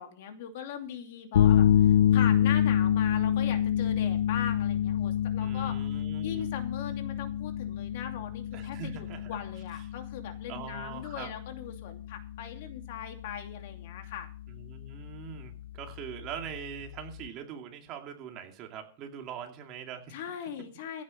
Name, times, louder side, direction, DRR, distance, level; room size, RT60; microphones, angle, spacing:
voice 1, 0.0-5.8 6.2-14.3 20.1-21.0, left 8 dB, 55° left, 6 dB, 2.7 m, -40 dB
sound 1, 1.3-17.3, left 10 dB, 80° left, 0.6 m, -28 dB
voice 2, 5.4-6.4 8.5-9.4 10.5-11.3 14.5-20.2, right 7 dB, 30° right, 4 dB, 2.5 m, -42 dB
15.5 x 8.6 x 5.3 m, 0.41 s
supercardioid pair, 160°, 0 cm